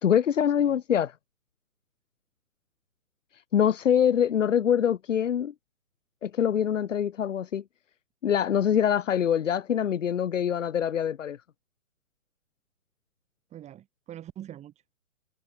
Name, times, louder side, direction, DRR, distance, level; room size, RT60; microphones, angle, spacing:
voice 1, 0.0-1.1 3.5-5.5 6.2-7.6 8.2-11.4, left 9 dB, 60° left, 3.0 m, -24 dB
voice 2, 13.5-14.9, right 12 dB, 15° right, 6.8 m, -44 dB
hypercardioid pair, 150°, 43 cm